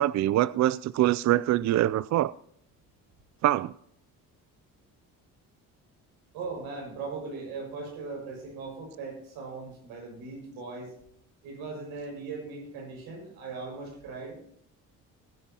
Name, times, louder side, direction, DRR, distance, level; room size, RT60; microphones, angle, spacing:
voice 1, 0.0-2.3 3.4-3.7, right 14 dB, 50° right, 0.4 m, -24 dB
voice 2, 6.3-10.9 11.4-14.3, right 4 dB, 85° right, 6.2 m, -39 dB
20.5 x 10.5 x 2.9 m
supercardioid pair, 75°, 36 cm